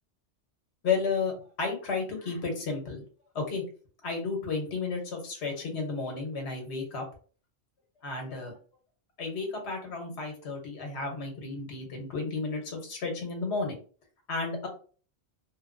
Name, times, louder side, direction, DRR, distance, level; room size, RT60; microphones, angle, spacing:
voice 1, 0.8-3.0 3.3-3.6 4.0-7.0 8.0-8.6 9.2-13.8 14.3-14.7, left 4 dB, 75° left, 2 dB, 1.1 m, -32 dB
2.9 x 2.4 x 2.5 m, 0.41 s
omnidirectional pair, 1.1 m